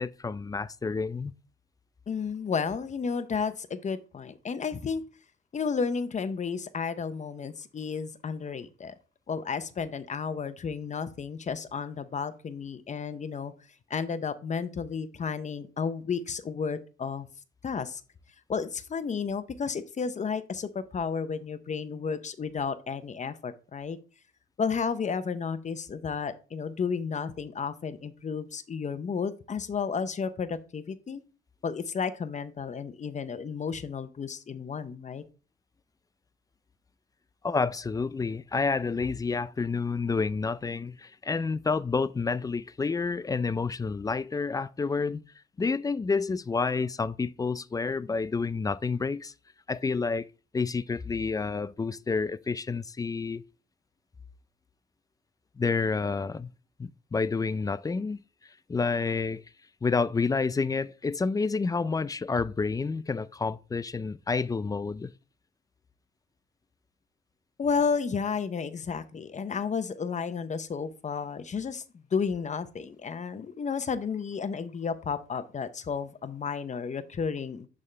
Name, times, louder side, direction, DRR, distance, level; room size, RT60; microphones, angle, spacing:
voice 1, 0.0-1.3 37.4-45.2 45.6-49.3 49.7-50.3 50.5-53.4 55.6-56.5 56.8-58.2 58.7-59.4 59.8-65.1, left 4 dB, 20° left, 0.3 m, -29 dB
voice 2, 2.1-5.0 5.5-8.9 9.3-13.5 13.9-17.3 17.6-18.0 18.5-24.0 24.6-31.2 31.6-35.2 67.6-71.8 72.1-77.7, left 5 dB, 35° left, 0.8 m, -32 dB
11.0 x 3.6 x 3.3 m
cardioid pair, 90°, 20 cm